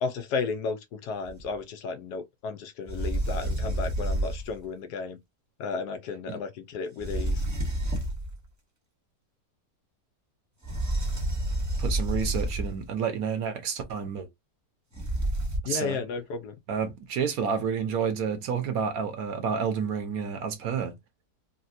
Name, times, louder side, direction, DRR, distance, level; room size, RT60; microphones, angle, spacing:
voice 1, 0.0-5.2 5.6-7.4 15.7-16.5, left 4 dB, 75° left, 1.2 m, -33 dB
sound 1, 1.3-1.5 2.9-4.6 7.0-8.3 10.6-12.9 15.0-15.6, right 1 dB, 15° right, 0.7 m, -29 dB
voice 2, 11.8-14.3 15.6-16.0 16.7-20.9, right 6 dB, 65° right, 1.1 m, -30 dB
4.1 x 2.1 x 2.6 m
omnidirectional pair, 1.8 m